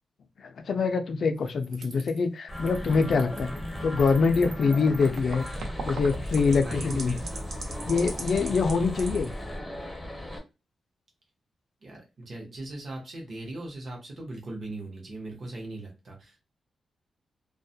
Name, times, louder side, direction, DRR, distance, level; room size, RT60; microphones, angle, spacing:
voice 1, 0.4-3.5 3.8-5.4 5.9-7.1 7.9-9.3, left 4 dB, 55° left, 7 dB, 0.4 m, -24 dB
sound 1, 1.4-2.2 2.6-9.3, right 4 dB, 75° right, 0.6 m, -40 dB
sound 2, 2.5-10.4, equal, 10° left, 0.6 m, -36 dB
voice 2, 6.6-7.2 11.8-16.4, right 2 dB, 45° right, 0 dB, 0.8 m, -39 dB
2.3 x 2.1 x 2.7 m, 0.27 s
wide cardioid pair, 125°, 0 cm